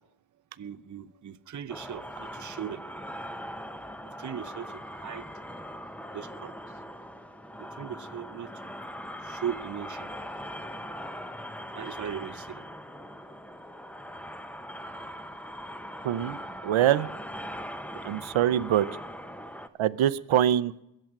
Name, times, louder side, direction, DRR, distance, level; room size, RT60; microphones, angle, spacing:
voice 1, 0.6-2.8 4.2-5.2 6.1-6.5 7.8-8.5 9.2-10.1 11.7-12.6, right 9 dB, 40° right, 10 dB, 0.6 m, -38 dB
sound 1, 1.7-19.7, equal, 5° left, 0.7 m, -41 dB
voice 2, 16.0-16.4 16.6-17.1 18.0-18.9 19.8-20.8, right 11 dB, 85° right, 17 dB, 0.6 m, -24 dB
22.5 x 7.8 x 5.9 m, 0.82 s
wide cardioid pair, 85°, 46 cm